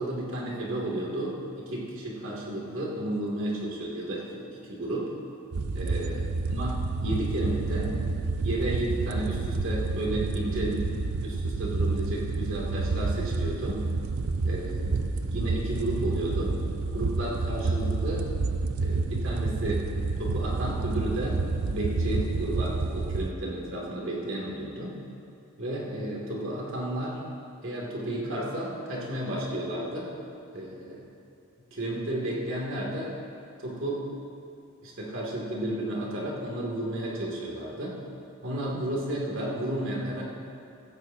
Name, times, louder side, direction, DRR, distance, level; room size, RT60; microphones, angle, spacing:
voice 1, 0.0-5.1 5.7-8.0 8.4-10.9 11.2-13.8 14.4-16.6 16.9-18.3 18.8-19.9 20.2-25.0 25.6-27.2 27.6-30.1 30.5-31.1 31.7-33.1 33.6-34.1 34.8-38.0 38.4-40.2, right 1 dB, 60° right, -3 dB, 2.6 m, -32 dB
sound 1, 5.5-23.3, right 3 dB, 85° right, 0.6 m, -29 dB
16.0 x 13.5 x 2.8 m, 2.5 s
head